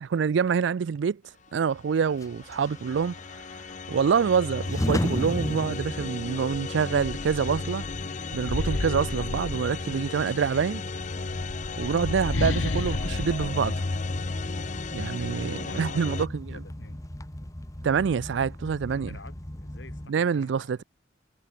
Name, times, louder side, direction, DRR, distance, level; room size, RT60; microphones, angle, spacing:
voice 1, 0.0-1.2 1.5-3.2 3.9-7.9 8.3-10.8 11.8-13.7 14.9-16.6 17.8-19.2 20.1-20.8, right 6 dB, 70° right, 0.4 m, -26 dB
sound 1, 1.9-16.3, left 3 dB, 40° left, 0.7 m, -34 dB
sound 2, 2.2-20.1, left 1 dB, 15° left, 1.2 m, -37 dB
sound 3, 6.0-6.1 6.5-10.1 11.1-14.7, left 2 dB, 85° left, 1.2 m, -34 dB
voice 2, 15.3-16.0 16.5-17.0 18.8-20.8, left 3 dB, 70° left, 2.1 m, -47 dB
head